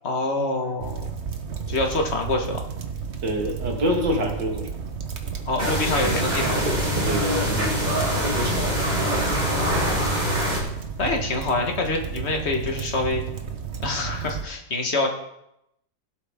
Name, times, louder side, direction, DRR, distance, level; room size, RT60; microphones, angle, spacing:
voice 1, 0.0-1.1 1.7-2.6 5.4-6.6 9.4-10.1 11.0-13.2 13.8-15.1, left 2 dB, 35° left, 2 dB, 1.7 m, -26 dB
sound 1, 0.8-14.5, right 7 dB, 45° right, 1.1 m, -33 dB
voice 2, 3.2-4.7 6.9-7.8 8.2-8.7, equal, 70° right, 1 dB, 2.5 m, -26 dB
sound 2, 5.6-10.6, equal, 20° right, 3.0 m, -24 dB
16.5 x 7.9 x 3.7 m, 0.81 s
omnidirectional pair, 2.0 m